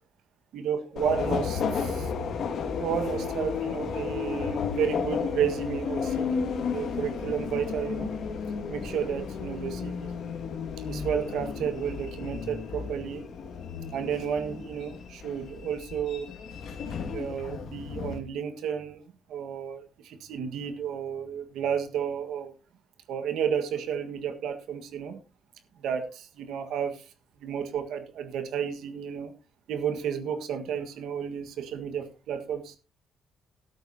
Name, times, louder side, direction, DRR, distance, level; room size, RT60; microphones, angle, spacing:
voice 1, 0.5-2.4 2.8-6.4 6.7-8.1 8.7-10.1 10.9-13.2 13.9-16.3 17.1-19.0 19.3-22.5 23.1-25.2 25.8-27.0 27.4-29.3 29.7-32.7, right 8 dB, 80° right, 8 dB, 1.6 m, -32 dB
Subway metro underground, 1.0-18.2, left 6 dB, 65° left, 2.2 m, -33 dB
12.5 x 12.5 x 2.8 m, 0.30 s
cardioid pair, 90°, 0 cm